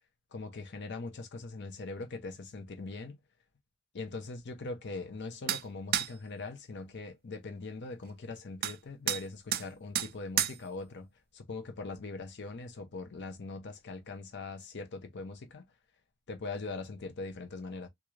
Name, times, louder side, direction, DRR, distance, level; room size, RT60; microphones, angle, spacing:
voice 1, 0.3-3.2 3.9-15.6 16.3-17.9, left 3 dB, 55° left, 0.6 m, -41 dB
sound 1, 5.5-5.6 5.9-6.1 8.6-8.8 9.1-9.2 9.5-9.7 10.0-10.1 10.4-10.6, right 11 dB, 45° right, 0.3 m, -30 dB
3.6 x 2.4 x 3.1 m
head